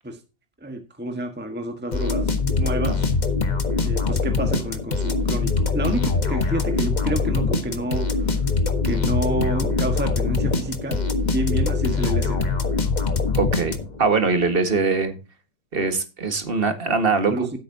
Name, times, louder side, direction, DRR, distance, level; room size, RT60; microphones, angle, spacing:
voice 1, 0.6-2.3 2.6-3.1 3.8-8.4 8.8-12.5 17.3-17.6, right 1 dB, 5° right, 5 dB, 1.4 m, -29 dB
sound 1, 1.9-14.1, left 4 dB, 30° left, 1.5 m, -23 dB
voice 2, 13.4-15.1 15.7-17.5, right 4 dB, 40° right, 8 dB, 2.0 m, -22 dB
15.0 x 8.6 x 2.8 m, 0.31 s
omnidirectional pair, 1.5 m